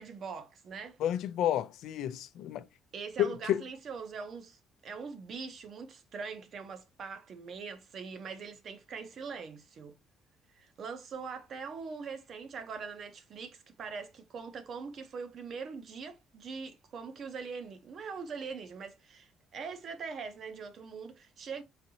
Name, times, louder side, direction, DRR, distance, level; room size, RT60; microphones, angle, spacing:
voice 1, 0.0-1.0 2.9-10.0 10.5-21.6, right 5 dB, 45° right, 0.7 m, -42 dB
voice 2, 1.0-2.6 3.2-3.6, left 11 dB, 75° left, 0.3 m, -30 dB
4.2 x 2.6 x 2.7 m
cardioid pair, 130°, 0 cm